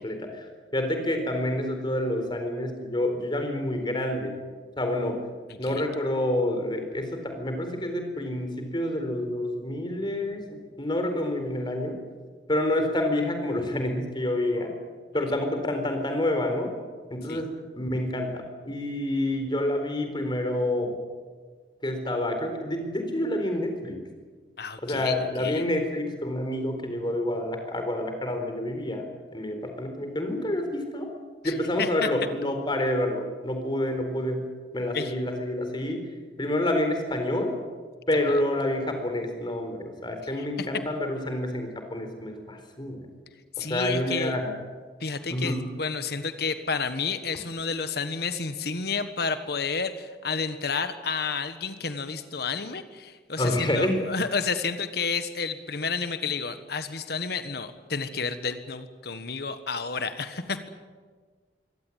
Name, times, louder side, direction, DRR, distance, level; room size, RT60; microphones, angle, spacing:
voice 1, 0.0-4.4 4.8-5.2 5.6-12.0 12.5-14.7 15.1-16.7 17.1-21.0 21.8-24.0 24.8-29.1 29.3-31.1 31.4-36.0 36.4-37.6 38.1-43.1 43.6-44.5 45.3-45.6 53.4-54.0, left 1 dB, 25° left, 5 dB, 4.2 m, -28 dB
voice 2, 24.6-25.6 31.4-31.5 31.8-32.1 34.9-35.1 40.4-40.7 43.6-44.3 45.0-60.7, left 5 dB, 60° left, 10 dB, 1.4 m, -31 dB
23.5 x 17.5 x 9.3 m, 1.5 s
head